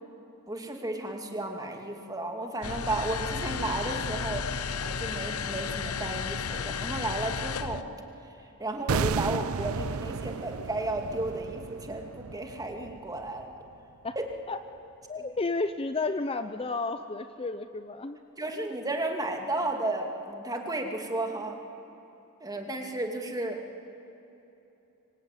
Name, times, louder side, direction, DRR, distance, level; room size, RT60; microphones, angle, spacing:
voice 1, 0.5-4.5 4.8-7.8 8.6-13.5 15.2-15.3 18.4-21.6 22.4-23.6, right 2 dB, 15° right, 3 dB, 2.5 m, -33 dB
sound 1, 2.6-7.8, left 5 dB, 80° left, 0.8 m, -33 dB
sound 2, 8.9-13.9 14.2-14.3, right 5 dB, 70° right, 0.6 m, -33 dB
voice 2, 15.1-18.2, left 3 dB, 25° left, 10 dB, 0.7 m, -32 dB
26.0 x 24.0 x 9.1 m, 3.0 s
head